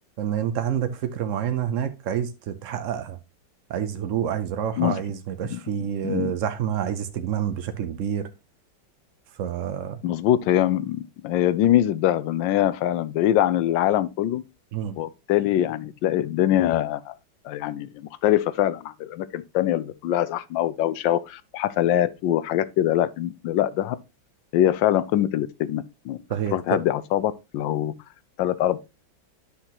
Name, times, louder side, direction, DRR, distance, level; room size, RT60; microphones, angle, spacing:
voice 1, 0.2-3.2 3.7-8.3 9.4-10.0 14.7-15.0 26.3-26.8, right 9 dB, 80° right, 0.7 m, -28 dB
voice 2, 10.0-14.4 15.0-17.1 17.4-24.0 24.5-26.2 26.5-27.9 28.4-28.8, left 12 dB, 75° left, 1.2 m, -23 dB
10.0 x 5.9 x 2.9 m
omnidirectional pair, 2.2 m